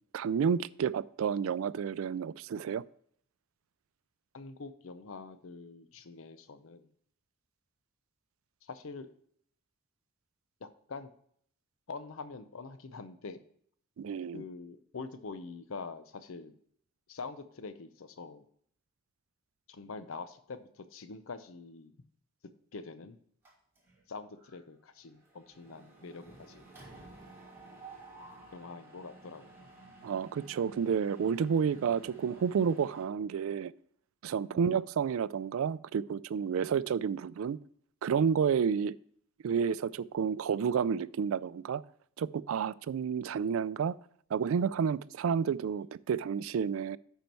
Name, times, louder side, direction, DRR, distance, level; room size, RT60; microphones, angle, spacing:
voice 1, 0.1-2.8 14.0-14.4 30.0-33.7 34.2-37.6 38.0-38.9 39.4-41.8 42.2-43.9 44.3-47.0, right 7 dB, 80° right, 0.3 m, -30 dB
voice 2, 4.3-6.9 8.6-9.1 10.6-11.1 11.9-13.4 14.3-16.6 17.1-18.4 19.7-21.9 22.7-23.2 24.1-26.7 28.5-29.5 34.4-34.6, left 4 dB, 80° left, 0.6 m, -45 dB
Mechanisms, 23.4-24.0 24.4-24.6 24.8-33.0, right 3 dB, 10° right, 1.7 m, -53 dB
10.5 x 4.6 x 4.4 m
head